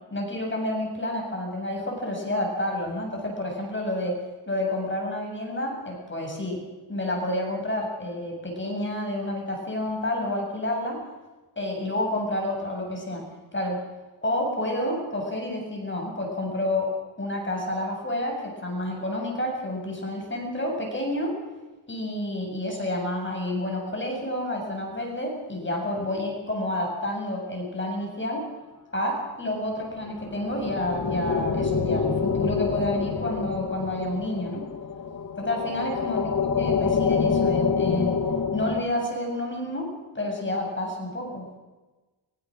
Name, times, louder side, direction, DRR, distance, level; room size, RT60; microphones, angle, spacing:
voice 1, 0.1-4.2 4.5-6.6 6.9-11.0 11.6-13.3 13.5-13.8 14.2-16.9 17.2-21.3 21.9-28.4 28.9-34.7 35.4-38.2 38.5-41.4, left 1 dB, 25° left, 0 dB, 7.2 m, -29 dB
sound 1, 29.9-38.8, left 5 dB, 45° left, 2.3 m, -27 dB
24.0 x 23.5 x 6.4 m, 1.2 s
wide cardioid pair, 120°, 46 cm